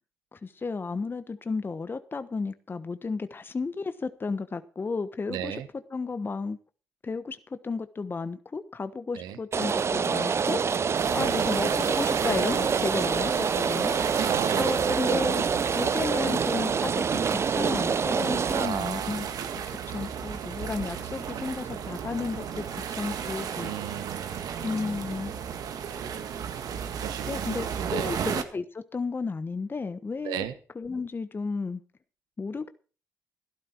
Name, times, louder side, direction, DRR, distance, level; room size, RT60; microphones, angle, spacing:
voice 1, 0.3-5.6 5.9-6.6 7.0-14.2 14.6-15.4 15.7-19.3 19.9-22.6 23.0-23.7 24.6-25.3 27.3-30.4 30.7-31.8 32.4-32.7, left 4 dB, 35° left, 1.1 m, -33 dB
voice 2, 5.3-5.7 9.1-9.4 11.2-11.4 14.2-14.9 18.5-19.3 19.8-19.9 23.6-24.5 27.0-28.2 30.2-30.5, right 11 dB, 85° right, 1.3 m, -35 dB
Rain, 9.5-18.7, right 6 dB, 45° right, 0.6 m, -26 dB
sound 1, 10.9-28.4, right 7 dB, 70° right, 1.8 m, -34 dB
14.0 x 12.0 x 4.5 m
supercardioid pair, 65°, 7 cm